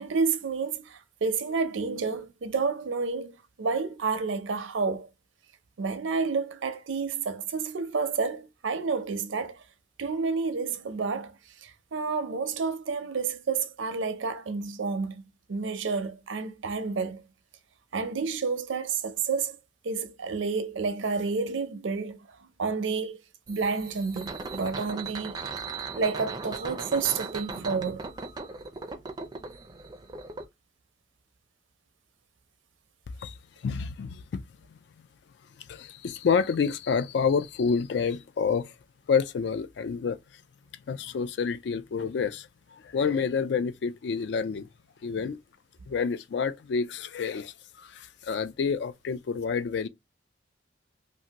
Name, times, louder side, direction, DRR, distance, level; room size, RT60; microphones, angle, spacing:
voice 1, 0.0-5.1 5.8-9.6 10.0-11.3 11.6-15.2 15.5-17.2 17.9-19.6 19.8-23.2 23.5-25.4 25.9-28.1 45.2-45.3, right 4 dB, 90° right, 0.5 m, -30 dB
sound 1, 23.5-30.4, right 4 dB, 20° right, 0.4 m, -38 dB
voice 2, 33.6-34.4 34.7-34.8 35.7-38.7 39.1-40.2 40.9-44.7 45.0-45.4 45.9-49.9, left 5 dB, 65° left, 0.3 m, -28 dB
2.6 x 2.5 x 2.8 m
head